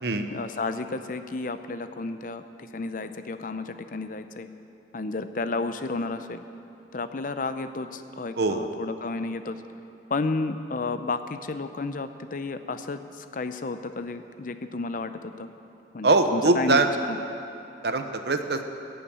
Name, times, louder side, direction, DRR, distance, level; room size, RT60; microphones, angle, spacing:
voice 1, 0.3-4.5 4.9-6.4 6.9-9.6 10.1-15.5 15.9-17.2, left 3 dB, 50° left, 10 dB, 0.6 m, -32 dB
voice 2, 8.4-8.7 16.0-16.9 17.8-18.6, right 3 dB, 65° right, 7 dB, 0.8 m, -22 dB
14.0 x 7.1 x 8.7 m, 2.8 s
head